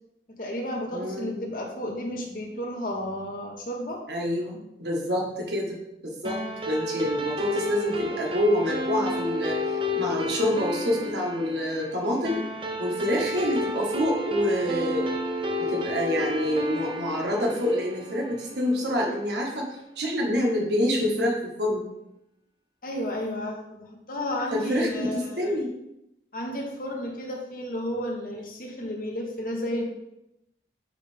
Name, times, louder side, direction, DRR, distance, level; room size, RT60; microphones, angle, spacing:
voice 1, 0.3-4.0 22.8-25.6 26.3-29.8, equal, 50° left, 1 dB, 1.1 m, -32 dB
voice 2, 0.9-1.4 4.1-5.8 6.0-9.6 9.9-12.4 12.8-15.1 15.6-21.9 24.5-25.7, left 1 dB, 75° right, -2 dB, 1.6 m, -27 dB
sound 1, 6.2-19.0, left 1 dB, 30° right, 0.6 m, -31 dB
9.0 x 3.3 x 3.5 m, 0.86 s
head